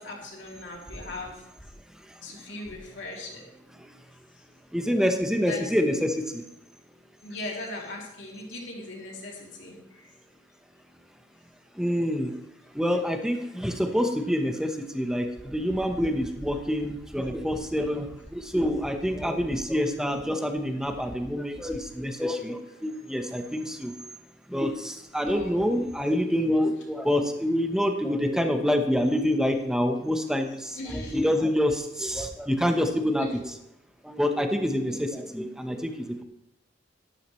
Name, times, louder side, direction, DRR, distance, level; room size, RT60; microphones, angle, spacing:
voice 1, 0.0-1.4 2.2-3.4 5.4-5.7 7.2-10.1 25.3-25.7 30.7-31.2 33.2-33.4 34.9-35.0, left 2 dB, 70° left, -2 dB, 2.8 m, -38 dB
voice 2, 4.7-6.2 11.8-12.3 12.7-23.9 24.5-33.5 34.0-36.2, equal, 5° right, 6 dB, 0.9 m, -27 dB
12.0 x 11.5 x 3.2 m, 0.84 s
head